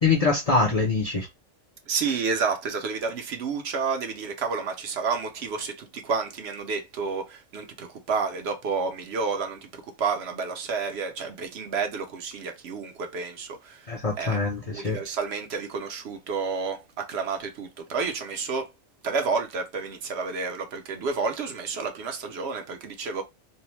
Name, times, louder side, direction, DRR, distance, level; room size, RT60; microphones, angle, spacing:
voice 1, 0.0-1.3 13.9-15.0, left 4 dB, 40° left, 0.5 m, -24 dB
voice 2, 1.9-9.6 10.0-13.8 14.2-14.4 14.7-18.7 19.0-23.2, right 5 dB, 70° right, 0.8 m, -30 dB
2.6 x 2.0 x 3.0 m
omnidirectional pair, 1.2 m